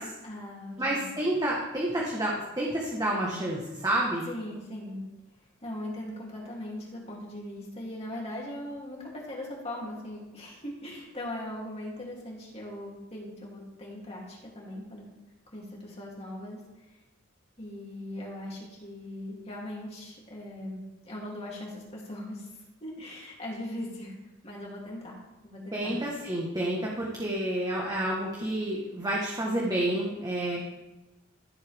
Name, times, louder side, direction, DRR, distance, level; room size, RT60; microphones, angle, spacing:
voice 1, 0.2-1.1 4.3-5.0 5.6-15.0 15.5-17.0 17.6-24.1 24.4-26.0 30.5-30.6, left 1 dB, 30° left, -4 dB, 2.9 m, -40 dB
voice 2, 0.8-4.3 25.7-30.6, right 1 dB, 15° right, -3 dB, 1.3 m, -29 dB
14.0 x 7.8 x 3.5 m, 1.0 s
head